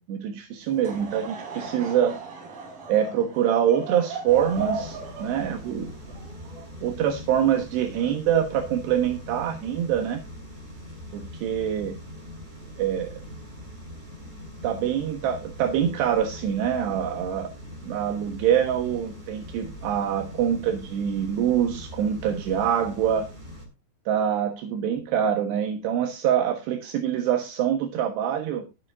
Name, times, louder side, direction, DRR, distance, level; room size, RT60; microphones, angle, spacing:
voice 1, 0.1-2.2 2.9-5.9 6.8-10.2 11.1-12.0 12.8-13.1 14.6-17.5 17.8-23.3 24.1-28.6, right 9 dB, 75° right, 4 dB, 3.4 m, -25 dB
Laughter / Crowd, 0.6-7.1, right 4 dB, 55° right, 5.4 m, -37 dB
sound 1, 4.3-23.7, equal, 15° right, 4.8 m, -41 dB
21.0 x 7.2 x 2.6 m, 0.27 s
omnidirectional pair, 4.9 m